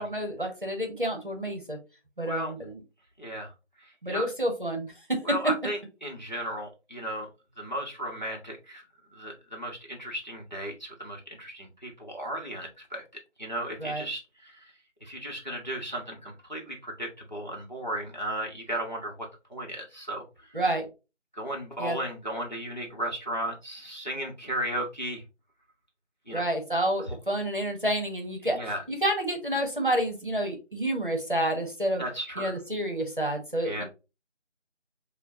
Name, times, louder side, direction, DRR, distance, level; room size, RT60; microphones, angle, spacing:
voice 1, 0.0-1.8 2.2-2.8 4.0-5.2 13.8-14.0 20.5-20.8 21.8-22.0 26.3-28.6 28.9-32.0 32.4-33.8, right 1 dB, 45° right, 2 dB, 0.9 m, -29 dB
voice 2, 2.2-2.5 3.2-3.5 3.8-4.3 5.2-7.3 7.6-8.8 9.1-13.0 13.4-14.7 15.0-19.1 19.5-20.2 21.3-25.2 26.3-26.4 27.1-27.2 28.4-28.8 32.0-32.6 33.6-33.8, right 1 dB, 40° left, -1 dB, 0.9 m, -35 dB
5.9 x 2.2 x 2.7 m, 0.29 s
figure-of-eight pair, 180°, 35 cm